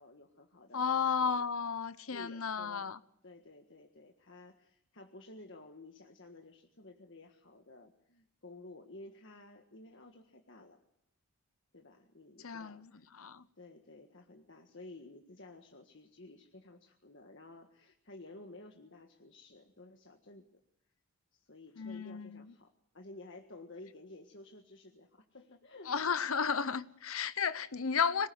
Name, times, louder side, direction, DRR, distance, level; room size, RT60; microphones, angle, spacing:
voice 1, 0.0-1.5 2.1-2.9 3.2-10.8 11.7-13.1 13.6-20.6 21.3-22.7 22.9-25.9, left 2 dB, 55° left, 1.7 m, -53 dB
voice 2, 0.7-3.0 12.4-12.9 13.2-13.4 21.8-22.5 25.9-28.3, left 6 dB, 75° left, 1.0 m, -33 dB
26.0 x 19.0 x 8.0 m
head